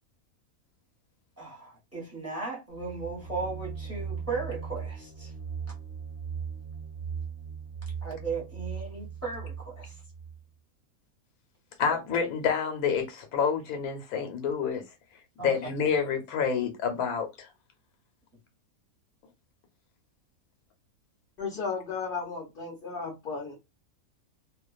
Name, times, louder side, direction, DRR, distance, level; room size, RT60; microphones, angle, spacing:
voice 1, 1.4-5.3 8.0-9.9 15.4-15.5 15.8-15.9, right 4 dB, 10° right, 0.8 m, -36 dB
sound 1, 2.7-10.4, right 6 dB, 45° right, 0.8 m, -38 dB
voice 2, 11.8-14.8 15.4-17.5, left 6 dB, 85° left, 1.1 m, -28 dB
voice 3, 21.4-23.6, left 5 dB, 60° left, 0.6 m, -34 dB
2.4 x 2.1 x 2.3 m
omnidirectional pair, 1.5 m